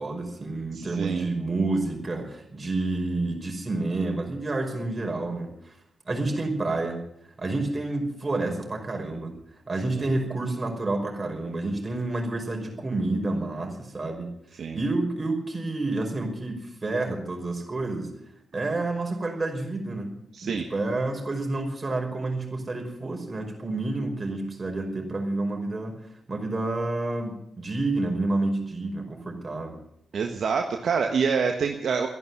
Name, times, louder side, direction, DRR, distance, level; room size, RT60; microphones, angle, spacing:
voice 1, 0.0-5.7 6.1-7.0 7.4-9.3 9.7-18.1 18.5-20.2 20.4-26.0 26.3-29.8, right 2 dB, 35° right, 2 dB, 5.4 m, -29 dB
voice 2, 0.7-1.3 14.6-14.8 20.3-20.7 30.1-32.1, right 5 dB, 65° right, 4 dB, 1.4 m, -26 dB
13.5 x 11.0 x 9.4 m, 0.73 s
hypercardioid pair, 40°, 0 cm